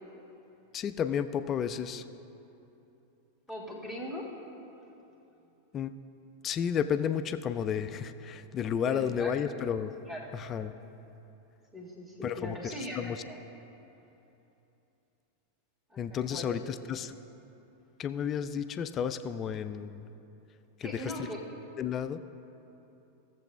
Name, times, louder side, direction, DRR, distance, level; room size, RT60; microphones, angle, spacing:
voice 1, 0.7-2.0 5.7-5.9 6.4-9.9 10.3-10.7 12.2-13.2 16.0-17.1 18.0-20.0 20.8-21.3 21.8-22.2, left 8 dB, 30° left, 11 dB, 0.3 m, -32 dB
voice 2, 3.5-4.3 8.9-9.3 10.1-10.3 11.7-13.4 15.9-16.7 20.8-21.4, left 1 dB, 15° right, -4 dB, 1.6 m, -40 dB
16.5 x 7.6 x 2.3 m, 2.9 s
figure-of-eight pair, 90°, 0 cm